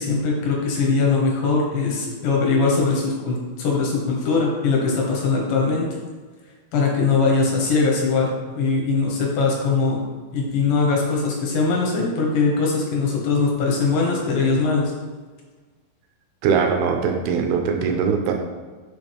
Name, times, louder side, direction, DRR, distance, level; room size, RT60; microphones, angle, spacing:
voice 1, 0.0-5.9 6.7-8.3 8.5-10.0 10.3-14.9, left 4 dB, 65° left, -2 dB, 2.8 m, -21 dB
voice 2, 16.4-18.3, right 6 dB, 80° right, 3 dB, 2.5 m, -21 dB
10.0 x 6.0 x 3.5 m, 1.4 s
omnidirectional pair, 4.7 m